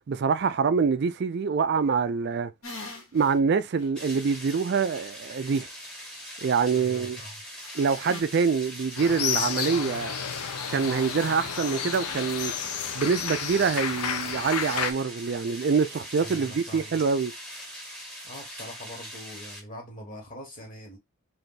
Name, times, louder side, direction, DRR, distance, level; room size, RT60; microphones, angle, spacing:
voice 1, 0.1-2.5 3.1-5.7 6.4-7.2 7.7-10.2 10.7-12.5 12.9-17.3, right 5 dB, 45° right, 0.3 m, -25 dB
sound 1, 2.6-3.3 3.8-3.9 7.6-8.2, left 2 dB, 65° left, 1.4 m, -41 dB
sound 2, 3.9-19.6, equal, 5° left, 1.1 m, -42 dB
voice 2, 6.7-7.3 16.2-17.0 18.2-21.0, equal, 35° left, 1.5 m, -43 dB
sound 3, 9.0-14.9, left 7 dB, 85° left, 0.6 m, -31 dB
3.4 x 2.6 x 4.0 m
head